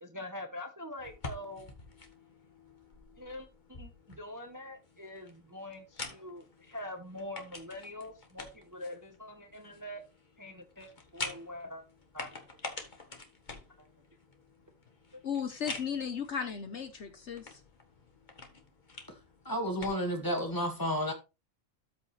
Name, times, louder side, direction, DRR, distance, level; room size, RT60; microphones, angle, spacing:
voice 1, 0.0-1.7 3.2-3.5 3.8-10.0 10.4-11.8 12.1-12.3, left 1 dB, 15° right, 0.9 m, -44 dB
sound 1, 1.0-20.5, left 3 dB, 35° left, 1.6 m, -47 dB
voice 2, 15.2-17.6, left 7 dB, 60° left, 1.2 m, -36 dB
voice 3, 19.5-21.1, equal, 15° left, 2.0 m, -31 dB
13.0 x 5.2 x 3.3 m
omnidirectional pair, 1.4 m